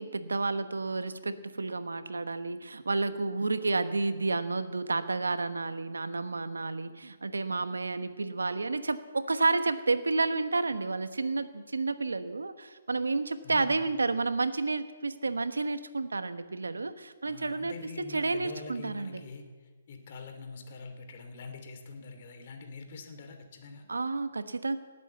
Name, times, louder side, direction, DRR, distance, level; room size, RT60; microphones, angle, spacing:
voice 1, 0.0-19.2 23.9-24.8, right 3 dB, 90° right, 11 dB, 1.1 m, -31 dB
voice 2, 13.4-13.9 17.2-23.9, left 3 dB, 50° left, 6 dB, 2.7 m, -45 dB
18.5 x 8.3 x 8.0 m, 1.5 s
hypercardioid pair, 145°, 0 cm